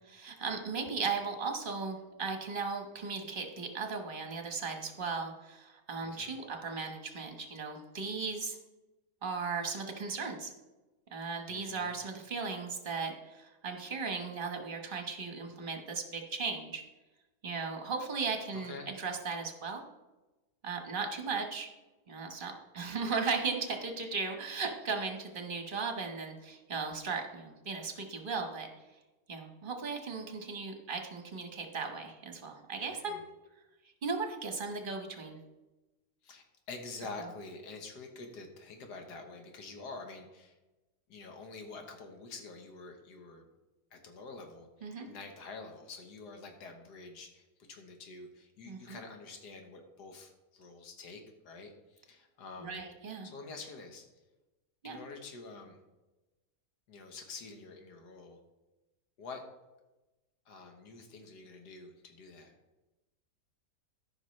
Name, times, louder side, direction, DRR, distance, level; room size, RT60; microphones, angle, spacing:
voice 1, 0.1-8.6 9.2-10.5 11.1-16.8 17.4-19.8 20.6-21.7 22.1-28.7 29.3-33.2 34.0-35.4 44.8-45.1 48.7-49.0 52.6-53.3 54.8-55.0, right 4 dB, 35° right, 4 dB, 1.2 m, -37 dB
voice 2, 6.0-6.3 11.5-12.0 18.5-18.9 32.9-33.2 36.2-40.6 41.1-43.5 43.9-52.8 53.2-54.1 54.8-55.8 56.9-58.4 59.2-59.4 60.5-62.5, left 3 dB, 85° left, 3 dB, 1.7 m, -47 dB
14.5 x 5.8 x 3.2 m, 1.1 s
omnidirectional pair, 1.7 m